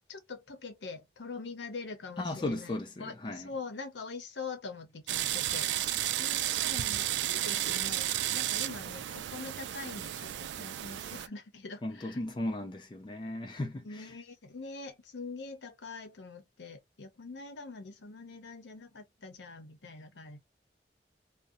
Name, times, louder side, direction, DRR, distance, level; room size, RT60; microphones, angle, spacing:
voice 1, 0.1-12.2 13.8-20.4, left 4 dB, 90° left, 0.8 m, -44 dB
voice 2, 2.2-3.5 11.8-14.1, left 1 dB, 25° left, 0.4 m, -36 dB
sound 1, 5.1-11.3, right 13 dB, 85° right, 0.3 m, -32 dB
2.5 x 2.1 x 2.6 m
head